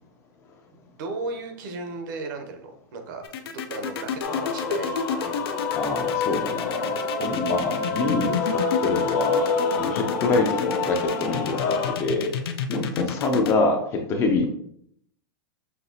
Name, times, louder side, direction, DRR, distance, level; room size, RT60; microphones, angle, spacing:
voice 1, 0.8-5.6, right 3 dB, 55° right, 5 dB, 0.8 m, -36 dB
sound 1, 3.2-13.5, left 7 dB, 85° left, 0.5 m, -30 dB
Male singing / Female singing / Musical instrument, 4.2-12.0, left 4 dB, 50° left, 0.8 m, -27 dB
voice 2, 5.7-6.9 7.2-12.3 12.7-14.5, left 3 dB, 20° left, 3 dB, 0.4 m, -26 dB
5.8 x 2.7 x 2.7 m, 0.67 s
supercardioid pair, 165°, 12 cm